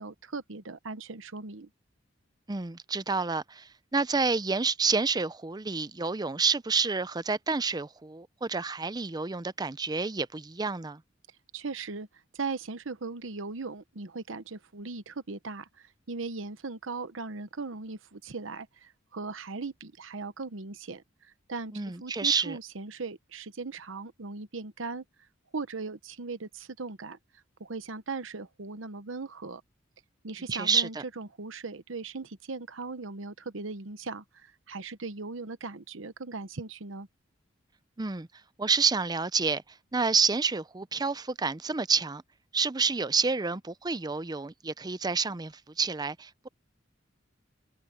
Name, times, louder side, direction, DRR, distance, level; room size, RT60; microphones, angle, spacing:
voice 1, 0.0-1.7 11.5-25.0 25.5-27.2 27.6-29.6 30.2-37.1, right 4 dB, 80° right, 1.0 m, -38 dB
voice 2, 2.5-11.0 21.7-22.6 30.5-31.0 38.0-38.3 38.6-39.6 39.9-42.2 42.5-46.5, right 4 dB, 20° right, 0.6 m, -29 dB
head